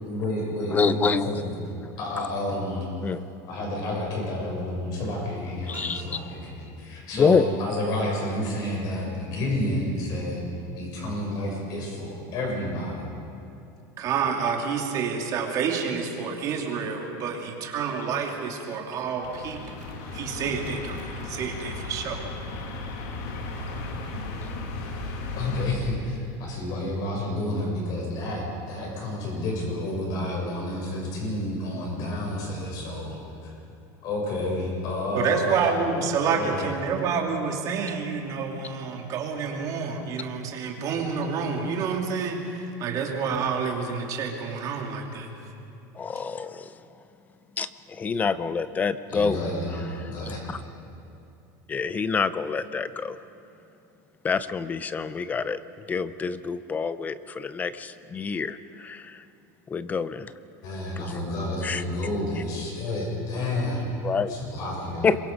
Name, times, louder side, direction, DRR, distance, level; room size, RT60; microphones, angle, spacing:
voice 1, 0.0-1.6 2.0-2.9 3.5-10.4 10.8-13.0 25.3-33.5 34.0-35.7 36.3-36.7 49.1-50.4 60.6-63.9 64.3-65.1, left 1 dB, 45° left, -2 dB, 7.2 m, -30 dB
voice 2, 0.7-1.3 3.0-3.2 5.7-6.0 7.1-7.4 45.9-46.7 47.6-49.4 50.3-50.6 51.7-53.2 54.2-55.6 55.9-59.2 59.7-60.3 61.0-61.2 61.6-61.8 64.0-64.3 65.0-65.2, left 5 dB, 15° left, 14 dB, 0.6 m, -27 dB
sound 1, 5.7-6.8, right 3 dB, 15° right, 4.6 m, -44 dB
voice 3, 14.0-19.8 20.1-22.2 35.1-45.3, right 5 dB, 40° right, 1 dB, 2.9 m, -28 dB
sound 2, 19.2-25.7, left 2 dB, 70° left, 2.7 m, -35 dB
26.5 x 23.0 x 5.3 m, 2.8 s
supercardioid pair, 160°, 10 cm